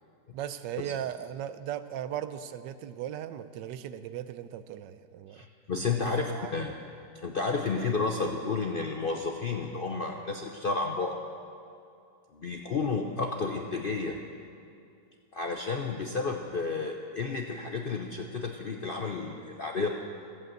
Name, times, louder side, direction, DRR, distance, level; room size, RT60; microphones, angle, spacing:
voice 1, 0.3-5.4 6.0-6.5, right 10 dB, 90° right, 12 dB, 1.3 m, -37 dB
voice 2, 5.3-6.7 7.2-11.2 12.3-14.2 15.3-20.0, left 4 dB, 60° left, 2 dB, 0.5 m, -31 dB
15.0 x 7.9 x 7.8 m, 2.5 s
omnidirectional pair, 1.9 m